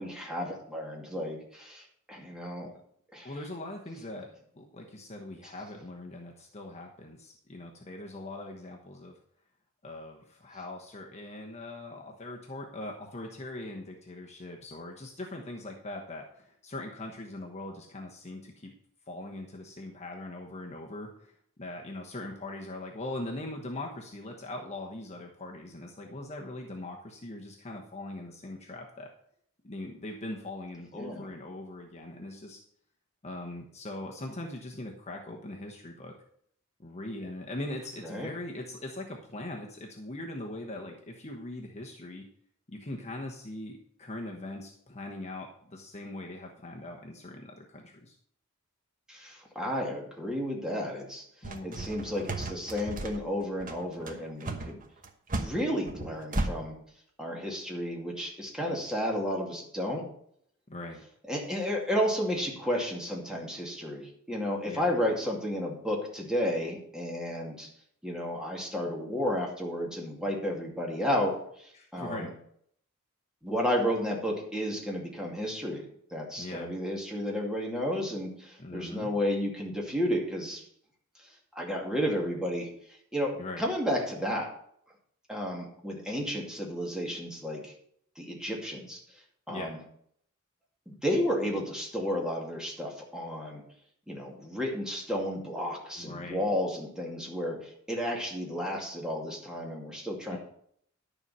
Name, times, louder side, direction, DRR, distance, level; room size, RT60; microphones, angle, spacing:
voice 1, 0.0-2.7 3.1-3.3 30.9-31.3 38.0-38.3 49.1-51.2 51.6-54.8 55.4-56.8 57.2-60.1 61.3-67.7 68.0-72.3 73.4-75.9 76.1-80.6 81.5-82.7 83.1-84.5 85.3-87.7 88.2-89.0 89.5-89.8 90.9-93.6 94.1-100.4, equal, 5° right, -1 dB, 2.4 m, -32 dB
voice 2, 3.2-4.3 4.5-9.1 9.8-18.7 19.1-29.1 29.6-32.6 33.2-36.1 36.8-42.2 42.7-48.2 51.4-51.9 60.7-61.0 64.7-64.9 71.7-72.3 76.4-76.7 78.6-79.1 83.4-83.6 89.5-89.7 95.9-96.5 100.3-100.4, left 1 dB, 30° left, 0 dB, 1.1 m, -41 dB
sound 1, 51.4-56.5, right 2 dB, 40° right, 1.1 m, -34 dB
11.0 x 7.1 x 5.5 m, 0.66 s
head